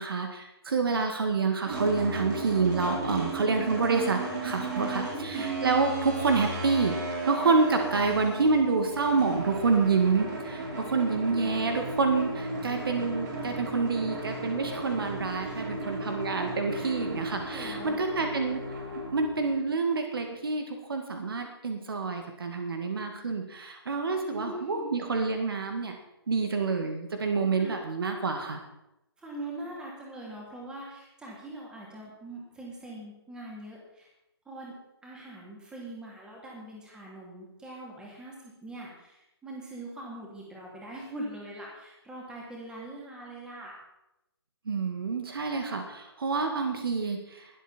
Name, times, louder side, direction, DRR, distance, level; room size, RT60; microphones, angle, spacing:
voice 1, 0.0-6.9 7.2-18.6 19.1-26.0 26.3-28.6 44.7-47.4, right 4 dB, 60° right, 5 dB, 2.0 m, -28 dB
sound 1, 1.6-19.6, right 2 dB, 40° right, 5.2 m, -35 dB
voice 2, 5.0-5.5 15.4-15.9 16.7-17.0 17.5-18.3 24.3-24.9 27.6-27.8 29.2-34.1 34.4-34.7 35.0-43.7, right 1 dB, 5° right, -3 dB, 3.1 m, -42 dB
21.5 x 8.2 x 4.4 m, 0.89 s
figure-of-eight pair, 145°, 14 cm